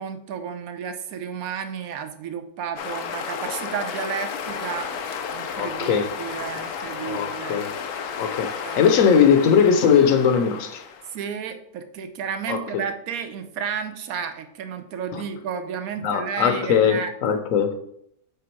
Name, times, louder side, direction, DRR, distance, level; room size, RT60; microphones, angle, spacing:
voice 1, 0.0-7.6 8.6-8.8 11.1-17.1, right 7 dB, 70° right, 1.2 m, -32 dB
sound 1, 2.8-11.2, left 6 dB, 85° left, 1.2 m, -33 dB
voice 2, 5.5-6.1 7.0-7.7 8.2-10.8 12.5-12.8 15.1-15.2 16.0-17.7, left 7 dB, 65° left, 1.1 m, -20 dB
8.6 x 3.6 x 4.5 m
omnidirectional pair, 1.6 m